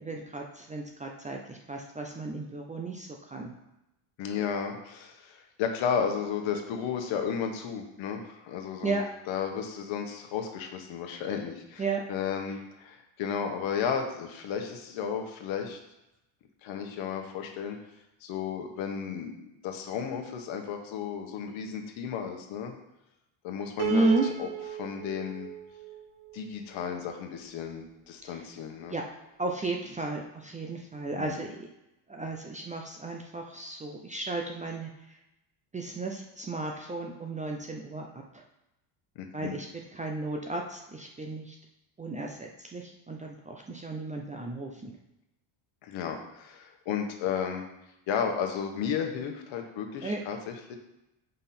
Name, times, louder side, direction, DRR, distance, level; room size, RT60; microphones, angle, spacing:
voice 1, 0.0-3.5 8.8-9.0 11.8-12.0 23.9-24.2 28.9-29.0 29.4-31.7 32.1-34.9 35.7-38.1 39.3-39.7 39.9-41.6 42.0-44.9 50.0-50.2, right 3 dB, 15° right, 1 dB, 0.4 m, -33 dB
voice 2, 4.2-11.8 12.1-15.8 16.6-17.8 18.2-22.7 23.4-24.5 24.8-25.5 26.3-29.0 31.1-31.4 39.1-39.6 45.8-47.6 48.1-50.8, left 7 dB, 65° left, 4 dB, 1.3 m, -33 dB
Piano, 23.8-27.0, right 11 dB, 50° right, 1.0 m, -37 dB
5.8 x 5.4 x 4.3 m, 0.90 s
cardioid pair, 130°, 50 cm